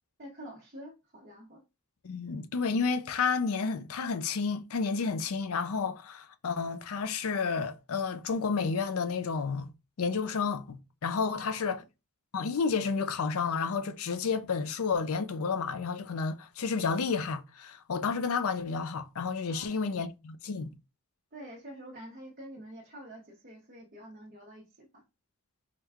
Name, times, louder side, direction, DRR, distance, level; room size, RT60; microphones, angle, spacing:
voice 1, 0.2-1.6 11.3-11.9 19.5-20.1 21.3-25.0, right 1 dB, 40° right, 0.9 m, -47 dB
voice 2, 2.0-9.7 10.0-11.8 12.3-20.7, left 5 dB, 65° left, 0.5 m, -31 dB
4.6 x 2.3 x 3.5 m
head